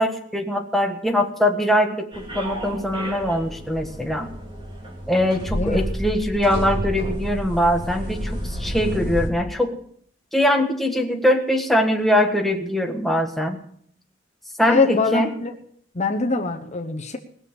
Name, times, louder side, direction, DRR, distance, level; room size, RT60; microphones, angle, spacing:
voice 1, 0.0-4.3 5.1-9.7 10.3-13.6 14.6-15.3, equal, ahead, 2 dB, 1.4 m, -22 dB
sound 1, 2.1-9.3, equal, 25° right, 3.2 m, -30 dB
voice 2, 5.5-5.8 14.7-15.5 15.9-17.2, left 3 dB, 35° left, 4 dB, 1.0 m, -23 dB
20.0 x 7.1 x 6.8 m, 0.64 s
head